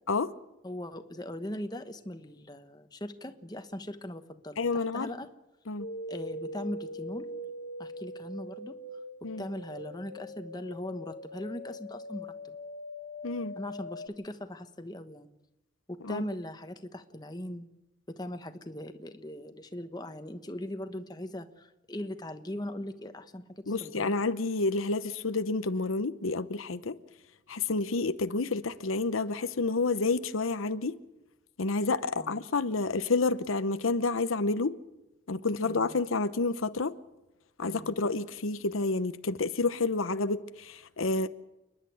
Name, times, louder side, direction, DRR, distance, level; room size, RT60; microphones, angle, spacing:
voice 1, 0.6-5.3 6.1-7.3 7.8-8.7 9.2-12.6 13.6-15.3 15.9-17.7 18.1-24.1 32.2-32.4 35.6-36.0 37.6-38.0, left 1 dB, 20° left, 1.1 m, -40 dB
voice 2, 4.6-5.1 5.7-5.9 9.2-9.4 13.2-13.5 16.0-16.2 23.7-27.0 27.5-30.9 31.6-34.7 35.3-36.9 37.6-41.3, left 3 dB, 90° left, 0.9 m, -29 dB
sound 1, 5.8-14.1, left 1 dB, 60° left, 1.5 m, -42 dB
29.5 x 11.0 x 9.3 m
head